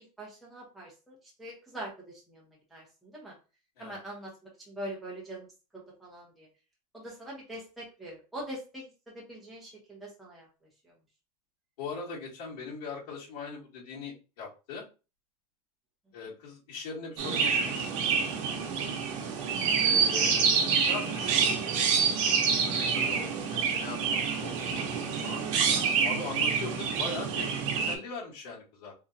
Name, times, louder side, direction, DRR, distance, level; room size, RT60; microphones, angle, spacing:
voice 1, 0.0-3.3 3.8-4.3 4.7-5.5 5.7-6.5 6.9-10.5 10.8-10.9, right 1 dB, ahead, -5 dB, 0.9 m, -43 dB
voice 2, 11.8-14.8 16.1-17.9 19.7-21.4 22.4-25.4 26.0-28.9, left 4 dB, 85° left, -9 dB, 2.0 m, -41 dB
Chirp tweet, 17.2-27.9, right 6 dB, 50° right, 0.9 m, -27 dB
3.7 x 3.1 x 2.7 m, 0.31 s
supercardioid pair, 180°, 19 cm